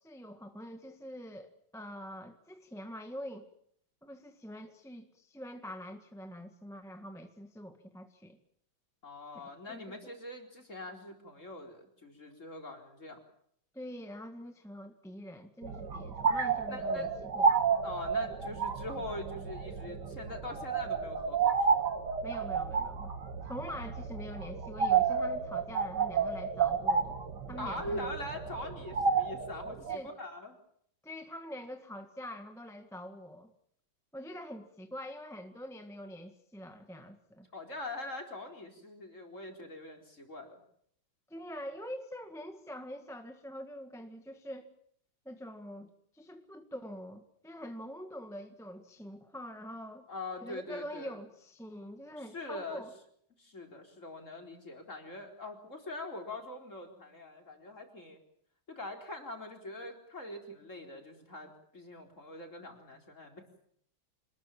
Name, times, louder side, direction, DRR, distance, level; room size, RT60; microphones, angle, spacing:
voice 1, 0.0-3.5 4.0-8.4 9.3-9.4 9.7-10.0 13.7-17.5 22.2-23.1 23.4-27.2 27.5-28.1 29.9-30.1 31.0-33.5 34.1-37.5 41.3-44.7 45.2-50.1 50.4-52.9, equal, ahead, 6 dB, 1.5 m, -45 dB
voice 2, 9.0-13.2 15.8-15.9 16.7-17.3 17.8-21.9 27.6-30.6 37.5-40.6 50.1-51.2 52.2-52.8 53.4-58.2 58.7-63.5, left 2 dB, 35° left, 3 dB, 4.6 m, -43 dB
sound 1, 15.6-30.0, right 6 dB, 55° right, 2.3 m, -31 dB
27.0 x 20.5 x 7.3 m, 0.67 s
omnidirectional pair, 2.2 m